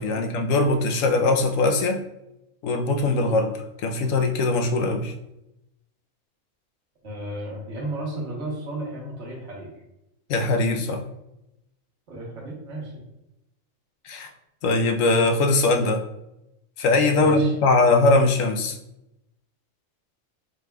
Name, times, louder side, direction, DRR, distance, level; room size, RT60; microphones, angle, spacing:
voice 1, 0.0-2.0 2.6-3.5 3.8-5.1 10.3-11.0 14.0-14.3 14.6-16.0 16.8-18.8, left 2 dB, 85° left, 4 dB, 1.0 m, -21 dB
voice 2, 7.0-9.7 12.1-13.0 17.1-17.5, right 1 dB, 65° right, -3 dB, 1.4 m, -34 dB
4.7 x 3.9 x 2.2 m, 0.88 s
omnidirectional pair, 1.3 m